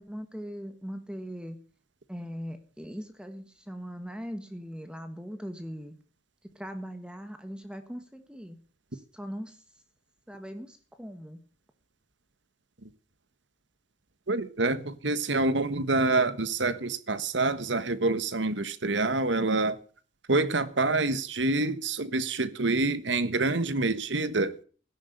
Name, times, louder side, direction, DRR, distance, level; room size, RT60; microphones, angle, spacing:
voice 1, 0.0-1.6 2.1-5.9 6.5-8.6 8.9-9.6 10.3-11.4, equal, 5° right, 1.5 m, -40 dB
voice 2, 14.3-19.8 20.3-24.5, right 2 dB, 70° right, 1.4 m, -27 dB
17.0 x 11.0 x 6.8 m
head